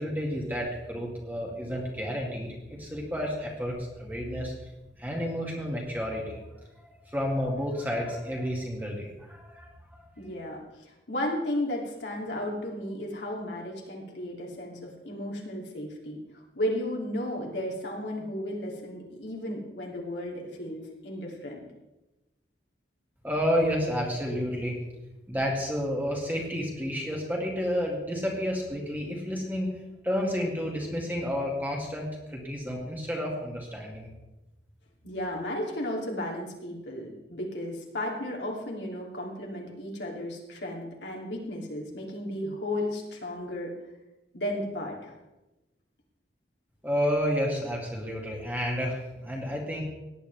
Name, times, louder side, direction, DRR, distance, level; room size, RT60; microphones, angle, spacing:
voice 1, 0.0-4.5 5.0-6.4 6.8-9.7 23.2-24.8 25.3-29.7 30.0-34.1 46.8-49.8, equal, 10° right, -1 dB, 2.1 m, -30 dB
voice 2, 10.2-16.2 16.5-21.6 35.0-43.7 44.3-45.2, left 1 dB, 75° left, -2 dB, 2.8 m, -34 dB
17.5 x 10.0 x 3.4 m, 1.0 s
head